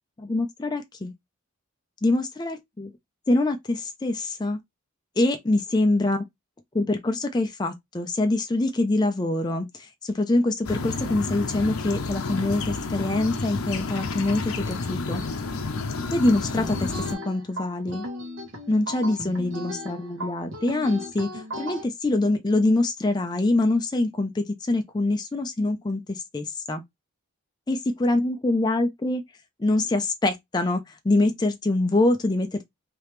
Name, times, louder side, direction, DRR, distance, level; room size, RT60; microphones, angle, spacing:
voice 1, 0.2-1.1 2.0-2.9 3.3-4.6 5.2-6.2 6.7-15.2 16.1-16.9 17.3-18.0 18.7-21.3 21.6-26.8 27.7-29.2 29.6-32.6, left 2 dB, 20° left, 0.4 m, -24 dB
sound 1, 10.6-17.1, left 3 dB, 80° left, 0.6 m, -30 dB
sound 2, 16.6-21.8, equal, 65° right, 1.3 m, -36 dB
3.3 x 2.8 x 3.2 m
head